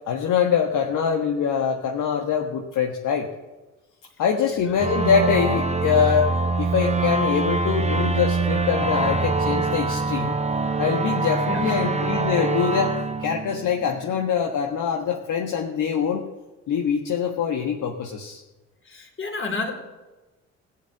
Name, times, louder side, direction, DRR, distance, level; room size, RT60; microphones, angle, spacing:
voice 1, 0.1-3.3 4.2-10.3 10.8-16.3 16.7-18.4, left 7 dB, 55° left, 2 dB, 1.5 m, -24 dB
sound 1, 4.8-14.1, right 3 dB, 15° right, 1.3 m, -24 dB
voice 2, 11.5-12.0 18.9-19.7, left 3 dB, 30° left, 2 dB, 3.9 m, -31 dB
16.5 x 7.9 x 7.7 m, 1.2 s
hypercardioid pair, 50°, 38 cm